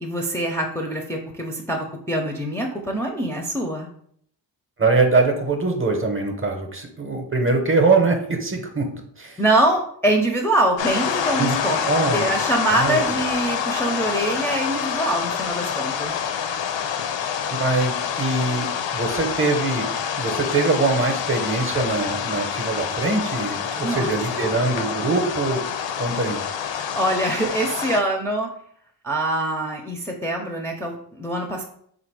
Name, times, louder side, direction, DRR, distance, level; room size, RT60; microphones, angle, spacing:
voice 1, 0.0-3.9 9.4-11.8 12.1-16.2 23.8-24.1 26.7-28.5 29.0-31.6, right 1 dB, 5° left, 0 dB, 0.4 m, -24 dB
voice 2, 4.8-8.9 9.2-9.4 11.4-11.6 11.8-12.3 12.7-13.1 17.5-19.9 20.2-25.6 26.0-26.4, right 3 dB, 30° right, 4 dB, 0.7 m, -22 dB
sound 1, 10.8-28.0, left 8 dB, 80° left, 0.5 m, -27 dB
3.6 x 2.5 x 4.6 m, 0.66 s
wide cardioid pair, 115°, 44 cm